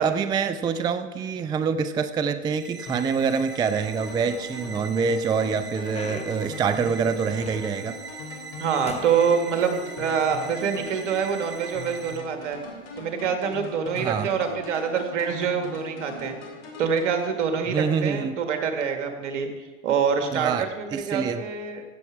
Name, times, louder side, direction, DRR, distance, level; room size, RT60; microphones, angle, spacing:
voice 1, 0.0-8.0 14.0-14.3 17.7-18.3 20.3-21.4, right 6 dB, 10° right, 11 dB, 0.3 m, -26 dB
sound 1, 2.5-12.2, right 5 dB, 30° right, 1.3 m, -42 dB
sound 2, 2.9-17.9, left 3 dB, 75° left, 3.2 m, -41 dB
sound 3, 4.0-4.7 5.2-8.0 8.3-8.6 8.9-10.1 10.9-11.0 11.7-11.9 13.1-13.3, left 5 dB, 15° left, 0.9 m, -43 dB
voice 2, 8.6-12.6 13.0-16.4 16.8-19.5 19.8-21.8, right 6 dB, 70° right, 6 dB, 1.9 m, -26 dB
15.0 x 7.1 x 4.7 m, 1.3 s
hypercardioid pair, 100°, 37 cm